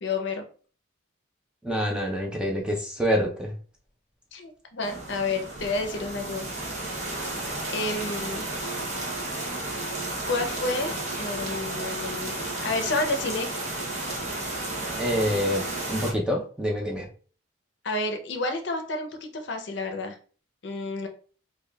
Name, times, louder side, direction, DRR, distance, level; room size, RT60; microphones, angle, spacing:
voice 1, 0.0-0.4 4.3-6.5 7.7-8.5 10.3-12.3 12.6-13.5 17.8-20.2 20.6-21.1, left 3 dB, 60° left, 5 dB, 0.6 m, -30 dB
voice 2, 1.6-3.5 15.0-17.1, equal, 5° right, -1 dB, 0.5 m, -27 dB
sound 1, 4.8-16.1, right 2 dB, 35° right, 0.8 m, -32 dB
5.1 x 2.3 x 2.2 m, 0.40 s
head